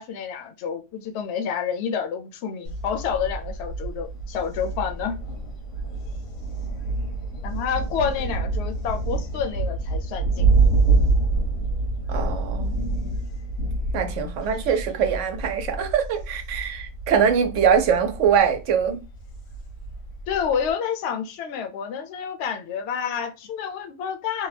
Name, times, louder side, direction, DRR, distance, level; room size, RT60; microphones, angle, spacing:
voice 1, 0.0-5.2 7.4-10.5 20.3-24.5, left 7 dB, 70° left, 0.8 m, -29 dB
Thunder, 2.6-20.7, right 3 dB, 90° left, 1.1 m, -27 dB
voice 2, 12.1-12.9 13.9-19.0, right 7 dB, 85° right, 1.0 m, -23 dB
2.8 x 2.2 x 3.2 m
omnidirectional pair, 1.2 m